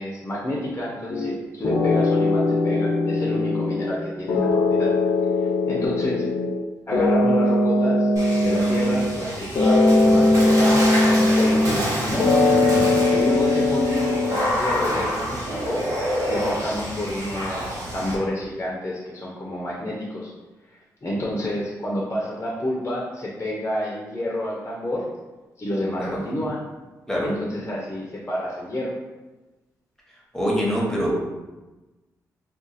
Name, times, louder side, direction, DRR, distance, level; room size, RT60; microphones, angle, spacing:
voice 1, 0.0-4.9 5.4-6.3 6.9-12.3 13.1-15.8 16.3-20.3 20.7-25.1 25.6-26.6 27.2-28.9, left 1 dB, 30° left, -3 dB, 0.7 m, -29 dB
sound 1, 1.1-1.3 1.6-4.0 4.3-6.6 6.9-9.3 9.6-11.9 12.2-14.5, left 2 dB, 75° left, 0.6 m, -20 dB
Water / Splash splatter, 8.2-18.2, equal, 50° right, 1.3 m, -27 dB
voice 2, 26.0-26.4 27.1-27.3 30.3-31.1, equal, 5° left, -4 dB, 1.1 m, -24 dB
2.5 x 2.4 x 3.9 m, 1.2 s
cardioid pair, 65°, 7 cm